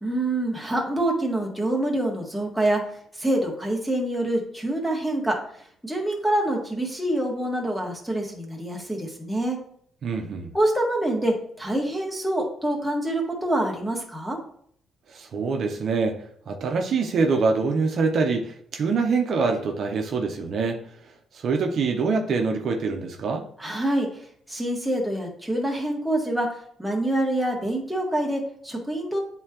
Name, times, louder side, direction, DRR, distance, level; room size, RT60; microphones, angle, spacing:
voice 1, 0.0-2.8 3.1-9.6 10.5-14.4 23.6-29.2, right 1 dB, ahead, -1 dB, 1.7 m, -26 dB
voice 2, 10.0-10.5 15.1-23.5, right 4 dB, 60° right, 3 dB, 0.8 m, -25 dB
8.6 x 3.8 x 3.0 m, 0.64 s
cardioid pair, 90°, 0 cm